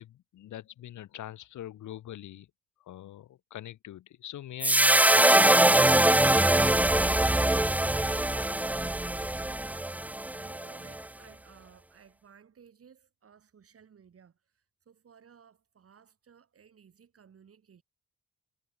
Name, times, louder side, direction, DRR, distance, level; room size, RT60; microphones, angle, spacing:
voice 1, 0.0-2.5 2.9-5.8, left 12 dB, 75° left, 3.2 m, -43 dB
sound 1, 4.6-11.0, right 1 dB, 5° right, 0.5 m, -23 dB
voice 2, 7.3-9.7 9.9-17.8, right 7 dB, 50° right, 6.6 m, -57 dB
cardioid pair, 90°, 30 cm